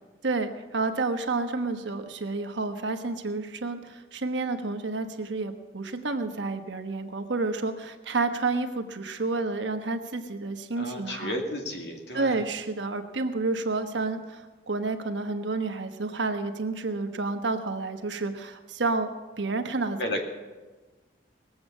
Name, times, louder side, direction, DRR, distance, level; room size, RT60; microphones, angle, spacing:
voice 1, 0.2-11.3 12.1-19.1 19.4-20.0, right 3 dB, 80° right, 6 dB, 1.2 m, -30 dB
voice 2, 10.8-12.4 20.0-20.3, left 1 dB, 65° left, 2 dB, 2.1 m, -32 dB
19.0 x 7.8 x 7.2 m, 1.3 s
head